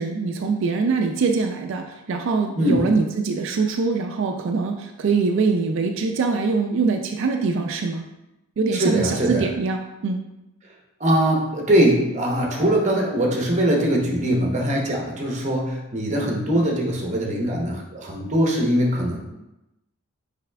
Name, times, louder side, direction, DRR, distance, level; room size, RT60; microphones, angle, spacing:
voice 1, 0.0-8.0 8.6-10.2, right 4 dB, 55° right, 4 dB, 0.3 m, -23 dB
voice 2, 8.7-9.5 11.0-19.2, right 1 dB, 30° right, -1 dB, 0.8 m, -21 dB
5.6 x 4.1 x 2.3 m, 0.94 s
head